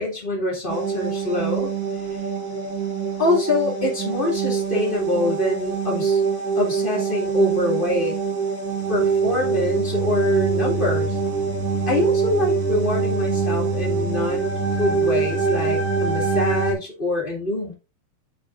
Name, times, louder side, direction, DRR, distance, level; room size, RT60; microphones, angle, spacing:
voice 1, 0.0-1.7 3.2-6.2 6.5-8.2 8.9-11.2 11.9-17.7, left 1 dB, 20° left, -2 dB, 1.4 m, -25 dB
sound 1, 0.7-16.7, right 5 dB, 65° right, 0.9 m, -24 dB
12.0 x 4.3 x 2.5 m, 0.29 s
omnidirectional pair, 4.1 m